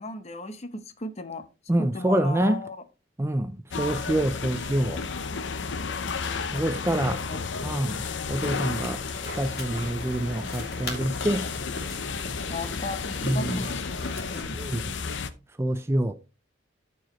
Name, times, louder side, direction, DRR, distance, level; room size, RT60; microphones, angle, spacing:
voice 1, 0.0-1.4 1.8-2.8 5.9-6.6 7.0-7.5 12.5-14.6, left 2 dB, 35° left, 0.8 m, -36 dB
voice 2, 1.7-2.6 3.2-5.0 6.5-7.2 7.6-11.5 13.2-13.8 14.5-15.0 15.6-16.1, right 1 dB, 15° right, 0.4 m, -27 dB
sound 1, 3.7-15.3, left 5 dB, 80° left, 0.7 m, -32 dB
sound 2, 8.3-14.4, left 2 dB, 55° left, 2.5 m, -40 dB
13.5 x 4.7 x 3.0 m
head